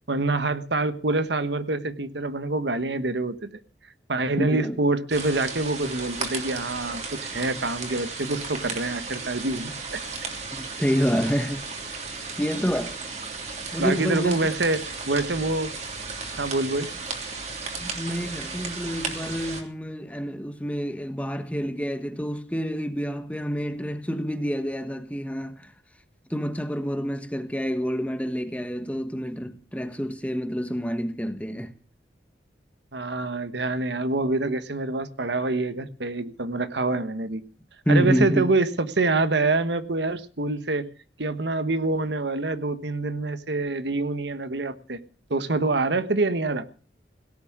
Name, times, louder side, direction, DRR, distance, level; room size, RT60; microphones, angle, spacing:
voice 1, 0.1-3.5 4.1-10.0 13.8-15.7 16.4-16.9 32.9-37.4 37.9-40.9 41.2-45.0 45.3-46.7, right 2 dB, 75° right, 1.2 m, -26 dB
voice 2, 4.4-4.8 10.5-11.6 12.4-13.0 13.7-14.4 17.8-25.7 26.3-31.7 37.8-38.5, equal, 10° left, 1.2 m, -28 dB
sound 1, 5.1-19.6, right 4 dB, 40° right, 3.2 m, -35 dB
17.5 x 7.3 x 9.6 m
head